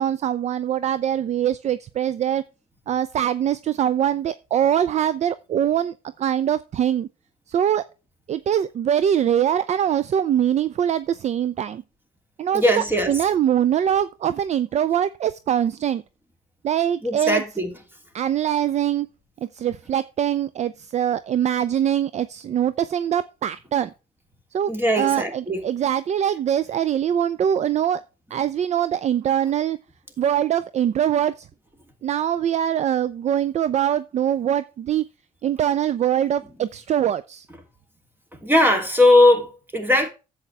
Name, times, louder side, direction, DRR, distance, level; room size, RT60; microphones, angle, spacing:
voice 1, 0.0-2.4 2.9-7.1 7.5-7.8 8.3-11.8 12.4-16.0 16.6-17.4 18.1-19.1 19.5-23.9 24.5-28.0 28.3-29.8 30.2-31.5 32.0-35.0 35.4-37.5, right 10 dB, 40° right, 0.5 m, -23 dB
voice 2, 12.5-13.1 17.0-17.7 24.7-25.6 38.4-40.1, left 1 dB, 10° right, 2.9 m, -19 dB
10.5 x 7.9 x 3.4 m
cardioid pair, 110°, 17 cm